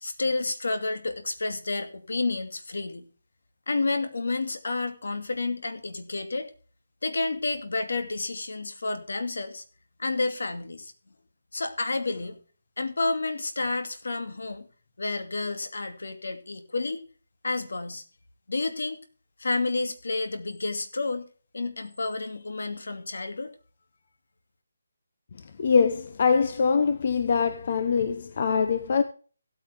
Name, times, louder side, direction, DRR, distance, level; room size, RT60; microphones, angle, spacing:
voice 1, 0.0-3.1 3.7-6.5 7.0-9.6 10.0-10.9 11.5-12.4 12.8-14.7 15.0-17.0 17.4-18.0 18.5-19.0 19.4-21.3 21.5-23.5, left 3 dB, 75° left, 2.4 m, -30 dB
voice 2, 25.6-29.0, left 5 dB, 40° left, 0.8 m, -23 dB
16.5 x 8.9 x 3.5 m
hypercardioid pair, 170°, 0 cm